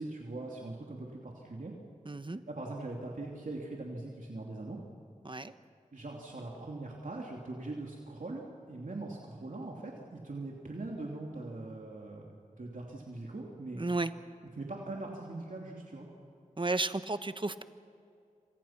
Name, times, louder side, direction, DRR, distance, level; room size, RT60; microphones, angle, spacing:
voice 1, 0.0-1.7 2.5-4.8 5.9-13.8 14.6-16.1, right 2 dB, 70° right, -1 dB, 3.0 m, -41 dB
voice 2, 2.0-2.4 5.2-5.5 13.7-14.1 16.6-17.6, right 2 dB, 35° right, 11 dB, 1.1 m, -33 dB
28.0 x 26.5 x 6.0 m, 2.5 s
wide cardioid pair, 50°, 14 cm